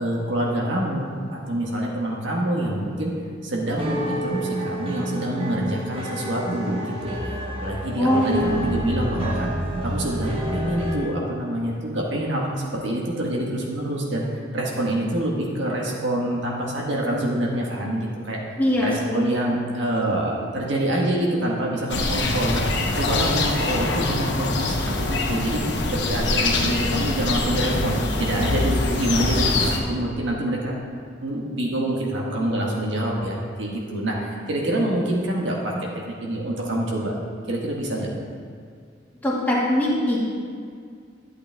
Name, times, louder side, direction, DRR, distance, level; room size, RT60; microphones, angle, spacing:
voice 1, 0.0-3.1 3.4-9.5 9.8-18.4 18.8-22.6 22.9-30.7 31.2-37.1 37.5-38.1, right 1 dB, 70° right, -2 dB, 1.5 m, -26 dB
sound 1, 3.7-11.0, right 1 dB, 30° right, 1.2 m, -29 dB
voice 2, 8.0-8.6 18.6-19.2 39.2-40.2, left 1 dB, 10° left, -7 dB, 1.8 m, -22 dB
sound 2, 21.9-29.8, left 2 dB, 60° left, 1.1 m, -24 dB
11.5 x 8.3 x 3.5 m, 2.1 s
head